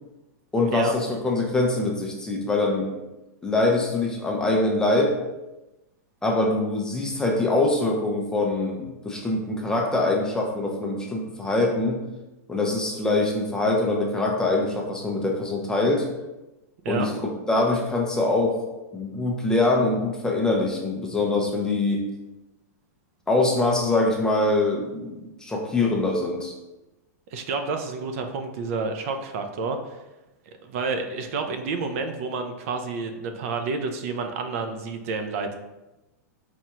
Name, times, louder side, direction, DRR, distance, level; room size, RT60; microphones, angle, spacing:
voice 1, 0.5-2.9 3.4-5.2 6.2-12.0 12.5-16.0 16.9-17.1 17.5-18.6 18.9-22.1 23.3-26.5, left 2 dB, 5° left, 0 dB, 0.4 m, -23 dB
voice 2, 27.3-30.0 30.5-35.6, right 4 dB, 55° right, 6 dB, 0.4 m, -29 dB
4.2 x 2.3 x 2.9 m, 1.0 s
supercardioid pair, 150°, 9 cm